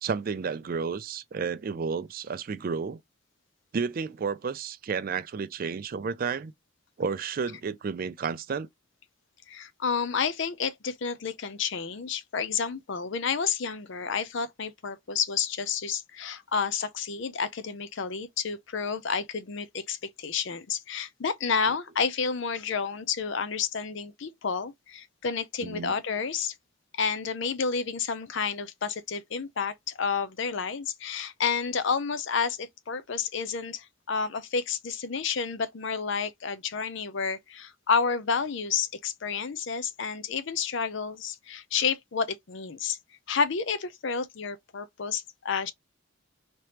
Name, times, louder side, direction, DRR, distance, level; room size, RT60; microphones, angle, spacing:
voice 1, 0.0-3.0 3.7-6.5 7.0-8.7 25.6-25.9, right 5 dB, 40° right, 0.3 m, -31 dB
voice 2, 9.5-26.5 26.9-43.0 43.3-45.7, left 6 dB, 55° left, 0.5 m, -30 dB
3.3 x 3.0 x 2.8 m
head